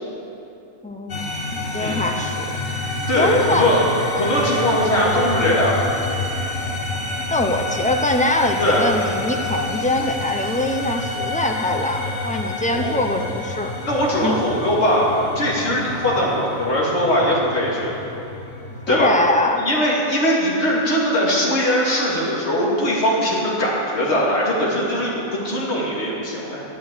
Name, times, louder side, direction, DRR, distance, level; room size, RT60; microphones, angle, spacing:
voice 1, 0.8-1.2 1.5-2.5 3.2-3.7 7.3-13.7 14.2-14.4 18.9-19.7, left 2 dB, 10° left, 4 dB, 0.4 m, -23 dB
sound 1, 1.1-19.1, left 2 dB, 65° left, 1.7 m, -28 dB
voice 2, 3.1-3.9 4.1-5.8 8.6-8.9 12.7-12.9 13.8-17.9 18.9-19.1 19.6-26.6, equal, 50° left, -5 dB, 2.7 m, -20 dB
12.5 x 8.5 x 6.9 m, 2.8 s
omnidirectional pair, 1.4 m